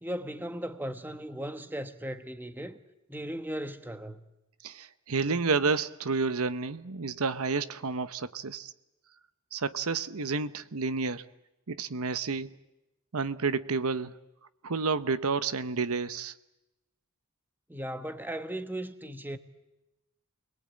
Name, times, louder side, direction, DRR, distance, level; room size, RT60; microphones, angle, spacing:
voice 1, 0.0-2.8 3.1-4.2 17.7-19.4, right 1 dB, 10° right, 1.2 m, -37 dB
voice 2, 4.6-8.7 9.5-11.2 11.7-12.6 13.1-14.2 14.6-16.3, right 4 dB, 80° right, 0.9 m, -30 dB
29.5 x 21.5 x 8.8 m
head